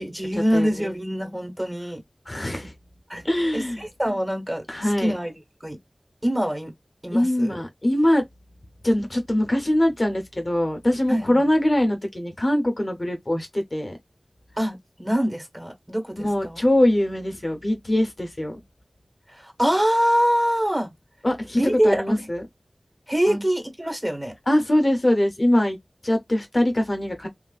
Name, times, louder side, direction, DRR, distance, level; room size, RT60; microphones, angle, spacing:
voice 1, 0.0-2.0 3.1-3.2 3.5-5.8 6.2-6.7 7.0-7.6 11.1-11.4 14.6-16.6 19.3-20.9 21.5-22.3 23.1-24.3, equal, 20° right, 1.3 m, -25 dB
voice 2, 0.5-0.9 2.3-2.7 3.2-3.9 4.7-5.1 7.1-8.2 8.8-13.9 16.2-18.6 21.2-22.4 23.3-23.4 24.5-25.8 26.0-27.3, left 1 dB, 45° left, 0.6 m, -22 dB
3.1 x 2.3 x 2.3 m
wide cardioid pair, 45°, 0 cm